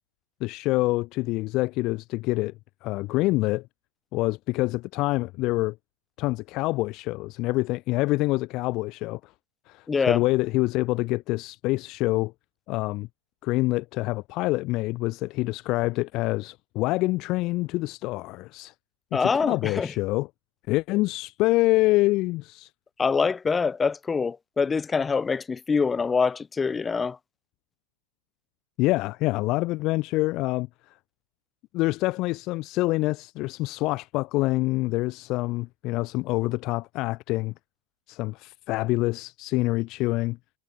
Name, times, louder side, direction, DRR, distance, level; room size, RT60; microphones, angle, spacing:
voice 1, 0.4-2.5 2.8-3.7 4.1-5.8 6.2-9.3 9.7-12.3 12.7-13.1 13.4-18.7 19.1-20.3 20.7-22.7 28.8-30.7 31.7-37.5 38.1-40.4, left 20 dB, 40° left, 0.8 m, -26 dB
voice 2, 9.9-10.2 19.1-19.9 23.0-27.2, left 5 dB, 15° left, 3.6 m, -25 dB
figure-of-eight pair, 90°, 0 cm